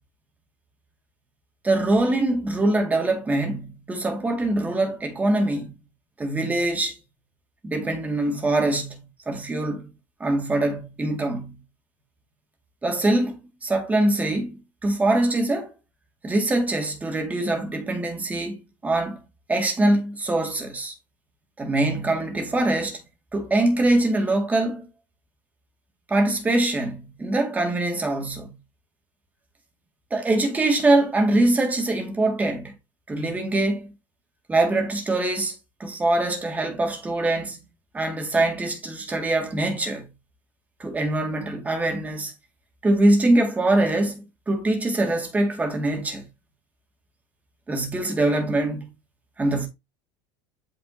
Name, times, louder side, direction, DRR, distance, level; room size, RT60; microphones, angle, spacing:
voice 1, 1.6-5.7 6.2-7.0 7.6-9.9 10.2-11.6 12.8-15.7 16.2-19.2 19.5-20.9 21.6-23.0 23.3-24.9 26.1-28.5 30.1-32.7 33.1-33.9 34.5-37.6 37.9-40.1 40.8-42.3 42.8-46.3 47.7-48.9 49.4-49.7, right 2 dB, 15° right, 1.9 m, -23 dB
7.9 x 5.1 x 2.7 m
supercardioid pair, 145°, 11 cm